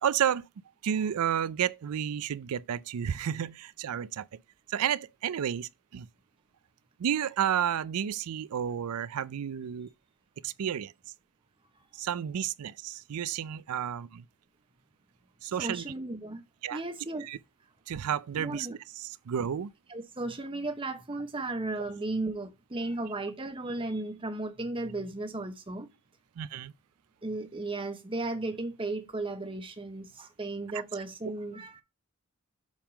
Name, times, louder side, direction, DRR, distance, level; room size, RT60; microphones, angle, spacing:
voice 1, 0.0-0.4 0.8-4.3 4.7-6.1 7.0-9.9 10.4-10.9 11.9-14.2 15.4-15.8 16.6-16.8 17.2-17.4 17.9-18.7 19.3-19.7 26.4-26.7, right 9 dB, 85° right, 0.4 m, -31 dB
voice 2, 15.6-16.4 16.7-17.3 18.4-18.8 19.9-25.9 27.2-31.8, right 2 dB, 25° right, 0.9 m, -35 dB
7.3 x 3.7 x 4.9 m
head